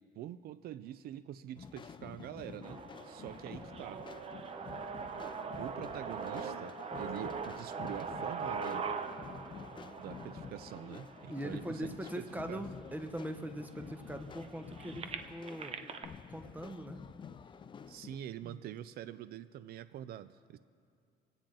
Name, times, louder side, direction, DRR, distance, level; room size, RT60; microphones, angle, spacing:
voice 1, 0.1-4.0 5.6-8.9 10.0-12.6 17.9-20.6, right 12 dB, 65° right, 14 dB, 0.4 m, -45 dB
sound 1, 1.6-18.2, left 6 dB, 30° left, 0.4 m, -50 dB
sound 2, 2.6-12.6 13.2-13.3 13.6-16.1, right 5 dB, 35° right, 0.8 m, -42 dB
voice 2, 11.3-15.8 16.3-17.0 18.4-18.6, right 1 dB, 10° right, 7 dB, 1.0 m, -41 dB
26.5 x 9.0 x 3.8 m, 2.4 s
cardioid pair, 110°, 17 cm